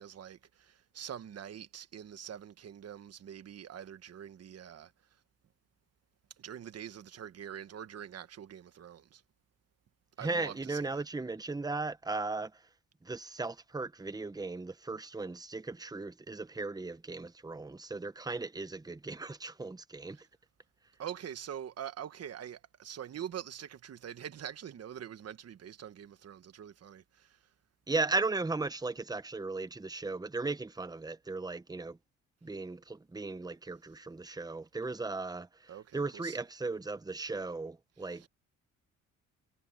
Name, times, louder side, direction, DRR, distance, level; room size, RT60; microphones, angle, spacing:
voice 1, 0.0-4.9 6.4-9.2 10.2-11.0 20.1-20.2 21.0-27.4 35.7-36.4 38.1-38.3, right 9 dB, 55° right, 1.5 m, -44 dB
voice 2, 10.2-12.6 13.0-20.2 27.9-32.0 32.4-38.2, right 3 dB, 15° right, 1.1 m, -36 dB
cardioid pair, 90°, 30 cm